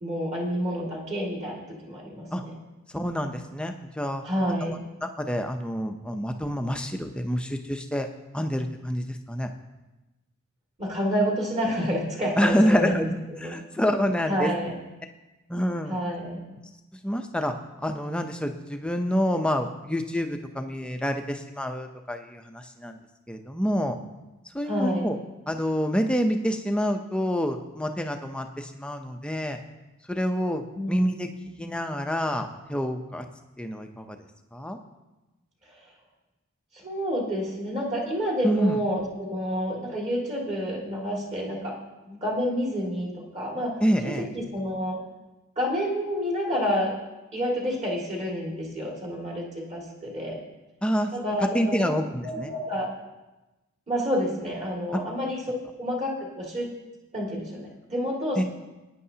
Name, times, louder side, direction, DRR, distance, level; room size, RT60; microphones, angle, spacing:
voice 1, 0.0-2.5 4.2-4.8 10.8-13.1 13.4-13.5 14.3-14.8 15.9-16.5 24.6-25.1 30.7-31.5 36.7-41.8 42.1-43.8 44.0-45.0 45.6-46.9 47.3-50.4 51.1-51.9 52.2-52.9 53.9-55.4 55.8-56.1 56.4-56.7 57.1-58.4, equal, 30° right, -3 dB, 2.2 m, -29 dB
voice 2, 2.9-4.2 5.2-8.1 8.3-9.5 12.4-14.5 15.5-16.0 17.0-23.0 23.3-24.0 24.5-25.2 25.5-29.6 30.1-31.3 31.6-33.2 33.6-34.2 34.5-34.8 38.4-38.8 43.8-44.3 50.8-51.1 51.5-52.5 58.4-58.5, equal, 5° left, 5 dB, 0.6 m, -27 dB
18.0 x 9.7 x 2.8 m, 1.1 s
head